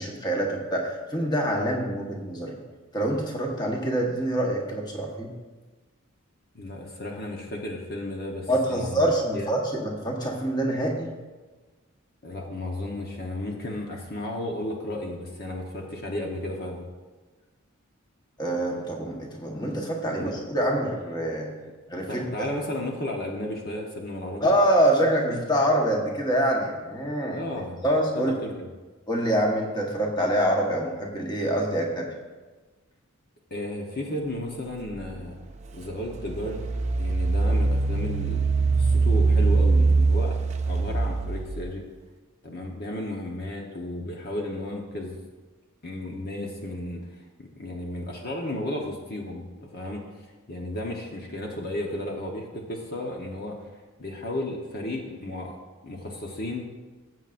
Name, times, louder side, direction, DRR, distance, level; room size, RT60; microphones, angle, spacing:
voice 1, 0.0-2.6 2.9-5.3 8.5-11.1 18.4-21.5 21.9-22.2 24.4-27.4 27.8-28.3 29.1-32.1, right 1 dB, 20° left, 0 dB, 1.3 m, -25 dB
voice 2, 6.5-9.0 9.3-9.5 12.2-16.8 20.0-20.4 22.1-24.5 27.3-27.8 28.1-28.7 33.5-35.4 35.7-36.6 37.0-40.4 40.6-41.9 42.4-45.2 45.8-49.5 49.7-53.7 54.0-55.6 55.8-56.7, left 1 dB, 45° left, 0 dB, 1.1 m, -34 dB
Engine, 35.1-35.2 35.8-41.7, right 3 dB, 30° right, 0.4 m, -23 dB
16.5 x 7.6 x 2.6 m, 1.3 s
head